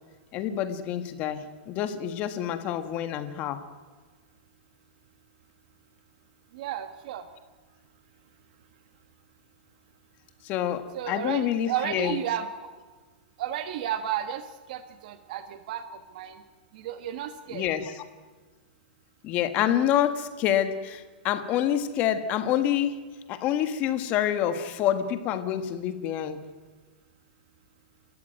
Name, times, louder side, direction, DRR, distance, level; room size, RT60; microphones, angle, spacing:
voice 1, 0.3-3.6 10.4-12.2 17.5-18.0 19.2-23.0 23.3-26.4, left 10 dB, 25° left, 9 dB, 1.6 m, -27 dB
voice 2, 6.5-7.2 10.9-12.5 13.4-14.4 14.7-15.8 16.1-16.4 16.7-17.6, right 11 dB, 50° right, 9 dB, 1.4 m, -32 dB
29.5 x 13.5 x 9.3 m, 1.4 s
supercardioid pair, 170°, 6 cm